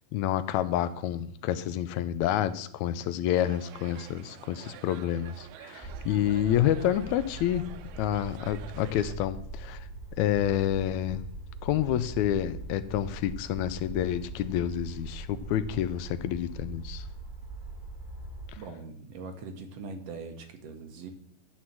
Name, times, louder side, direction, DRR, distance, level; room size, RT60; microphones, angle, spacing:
voice 1, 0.1-9.9 10.2-11.2 11.6-17.1, left 11 dB, 85° left, 1.9 m, -29 dB
sound 1, 3.3-9.2, right 11 dB, 85° right, 2.1 m, -48 dB
sound 2, 5.8-18.5, right 2 dB, 10° right, 3.0 m, -41 dB
voice 2, 18.6-21.1, right 4 dB, 65° right, 1.9 m, -41 dB
11.5 x 4.3 x 7.2 m
omnidirectional pair, 3.4 m